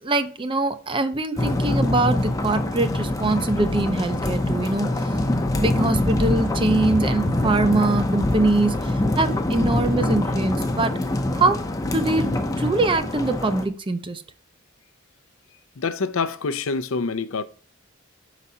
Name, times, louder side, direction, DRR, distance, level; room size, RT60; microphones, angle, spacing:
voice 1, 0.0-5.2 5.6-10.9 11.4-11.6 11.9-12.3 12.6-14.2, right 2 dB, 25° right, 0.5 m, -23 dB
sound 1, 1.4-13.6, left 1 dB, 15° left, 0.6 m, -24 dB
voice 2, 15.8-17.4, left 4 dB, 75° left, 0.6 m, -26 dB
6.1 x 4.1 x 5.4 m
head